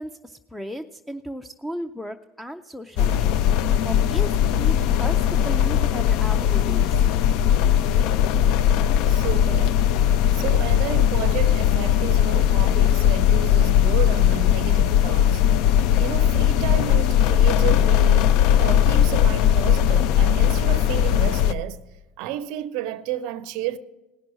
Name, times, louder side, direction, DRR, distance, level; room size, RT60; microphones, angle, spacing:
voice 1, 0.0-4.3 4.6-7.0, equal, 5° left, 0.5 m, -35 dB
sound 1, 3.0-21.5, left 10 dB, 65° left, 0.4 m, -19 dB
voice 2, 9.1-9.9 10.3-15.4 16.0-18.3 18.6-21.8 22.2-23.8, right 12 dB, 65° right, 0.5 m, -31 dB
18.0 x 6.0 x 6.4 m
hypercardioid pair, 85°, 0 cm